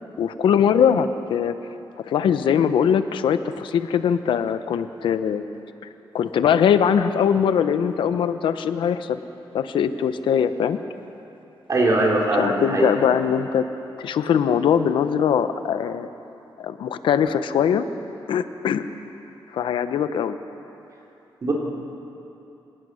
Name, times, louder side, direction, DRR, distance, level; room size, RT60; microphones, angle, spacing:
voice 1, 0.2-1.5 2.0-5.4 6.1-9.2 9.5-10.8 12.4-13.6 14.0-16.1 16.6-17.9 18.3-18.9 19.5-20.4, left 8 dB, 85° left, 11 dB, 0.9 m, -21 dB
voice 2, 11.7-13.1 21.4-21.5, right 2 dB, 45° right, -2 dB, 4.1 m, -21 dB
26.5 x 18.0 x 6.4 m, 2.9 s
cardioid pair, 115°, 8 cm